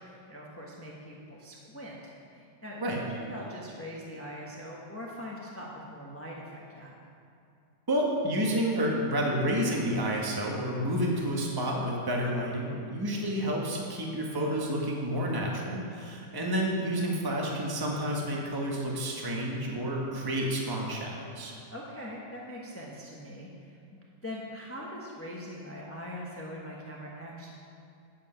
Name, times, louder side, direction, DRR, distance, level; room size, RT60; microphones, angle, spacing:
voice 1, 0.0-2.0 2.3-7.0 21.4-27.5, equal, 10° left, -3 dB, 0.9 m, -42 dB
voice 2, 7.9-21.5, equal, 15° right, -1 dB, 1.1 m, -30 dB
10.0 x 7.6 x 5.6 m, 2.6 s
omnidirectional pair, 1.7 m